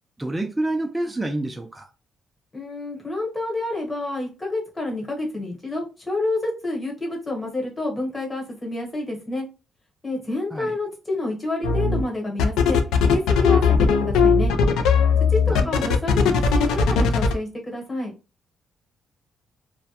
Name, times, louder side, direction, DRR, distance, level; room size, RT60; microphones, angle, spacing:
voice 1, 0.2-1.9 10.5-10.7 15.5-15.7, right 1 dB, 15° right, 0.3 m, -28 dB
voice 2, 2.5-9.5 10.0-14.5 15.3-18.1, left 2 dB, 20° left, 1.1 m, -28 dB
sound 1, 11.6-12.0 12.4-17.3, left 6 dB, 85° left, 0.3 m, -18 dB
2.2 x 2.1 x 2.7 m
cardioid pair, 90°, 0 cm